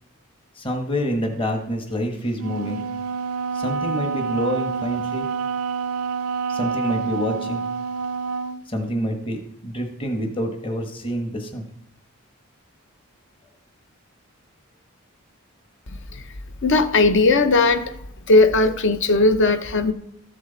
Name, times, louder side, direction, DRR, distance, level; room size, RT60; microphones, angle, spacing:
voice 1, 0.6-2.8 3.5-5.3 6.5-7.6 8.7-11.7, equal, 25° left, 1.2 m, -27 dB
Wind instrument woodwind instrument, 2.3-8.6, right 5 dB, 80° right, 0.5 m, -27 dB
voice 2, 16.6-17.9 18.3-19.9, left 3 dB, 55° left, 0.7 m, -17 dB
13.5 x 7.5 x 3.9 m
head